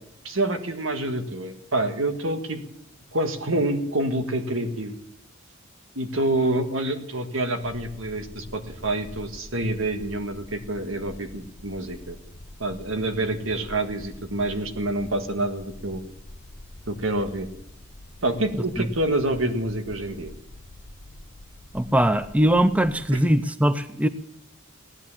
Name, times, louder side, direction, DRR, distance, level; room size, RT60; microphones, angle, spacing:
voice 1, 0.2-2.6 3.1-4.9 5.9-12.2 12.6-16.0 16.9-17.5 18.2-20.3, right 1 dB, 75° right, 8 dB, 1.7 m, -27 dB
sound 1, 7.6-23.2, left 1 dB, 35° left, 0.8 m, -45 dB
voice 2, 21.7-24.1, right 1 dB, 5° right, 13 dB, 0.5 m, -21 dB
16.5 x 10.5 x 7.3 m, 0.78 s
head